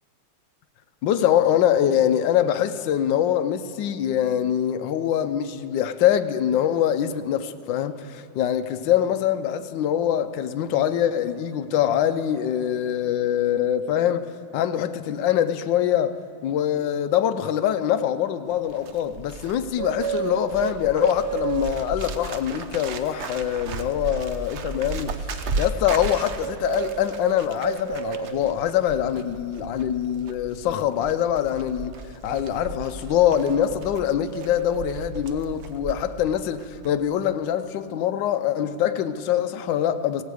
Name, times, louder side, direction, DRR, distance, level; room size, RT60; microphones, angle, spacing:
voice 1, 1.0-25.2 25.6-40.2, left 10 dB, 75° left, 1.3 m, -24 dB
Bird, 18.5-36.3 36.6-36.9, right 5 dB, 65° right, 0.7 m, -33 dB
17.0 x 17.0 x 4.8 m
omnidirectional pair, 2.1 m